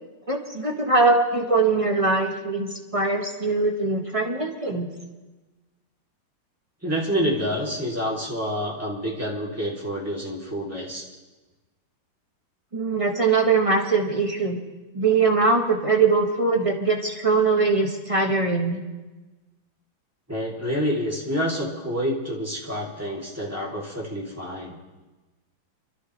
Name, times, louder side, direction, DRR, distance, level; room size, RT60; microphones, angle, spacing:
voice 1, 0.3-4.9 12.7-14.6 14.9-18.8, right 3 dB, 20° right, 1 dB, 0.9 m, -22 dB
voice 2, 6.8-11.0 20.3-24.8, equal, 5° right, -5 dB, 2.7 m, -28 dB
24.5 x 13.0 x 3.2 m, 1.2 s
omnidirectional pair, 2.2 m